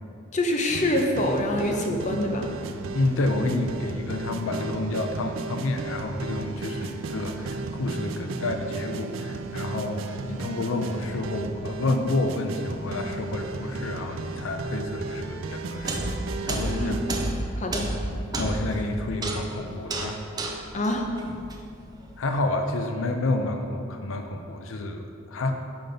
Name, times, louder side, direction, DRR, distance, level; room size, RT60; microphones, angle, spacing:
voice 1, 0.3-2.5 16.8-16.9 17.6-17.9 20.7-21.0, left 1 dB, 35° left, 2 dB, 0.7 m, -25 dB
sound 1, 0.7-17.3, right 3 dB, 85° right, 0.4 m, -35 dB
voice 2, 2.9-16.0 16.4-17.0 18.4-20.2 22.2-25.5, left 2 dB, 90° left, 5 dB, 0.5 m, -29 dB
sound 2, 15.7-22.0, right 1 dB, 20° right, 0.5 m, -31 dB
5.8 x 5.3 x 5.0 m, 2.4 s
head